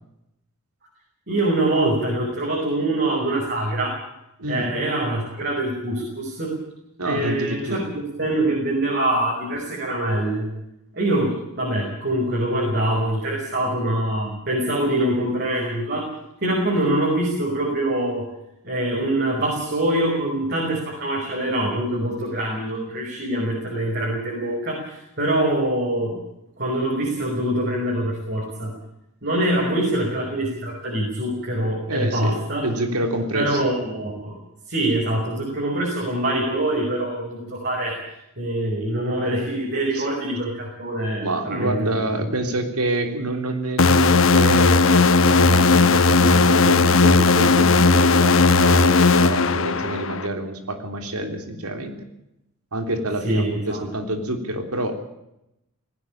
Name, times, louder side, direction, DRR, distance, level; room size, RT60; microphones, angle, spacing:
voice 1, 1.3-4.0 4.5-6.6 7.0-10.5 10.9-16.1 16.4-18.3 18.6-26.2 26.6-28.7 29.2-32.7 33.3-34.3 34.7-38.0 38.4-42.3 53.2-53.8, right 1 dB, 50° right, -2 dB, 5.7 m, -24 dB
voice 2, 7.0-7.8 31.9-33.6 39.9-40.1 41.2-52.1 52.7-55.0, right 1 dB, 90° right, 6 dB, 3.4 m, -27 dB
sound 1, 43.8-50.3, left 3 dB, 60° left, 1.1 m, -16 dB
19.0 x 17.0 x 8.8 m, 0.85 s
head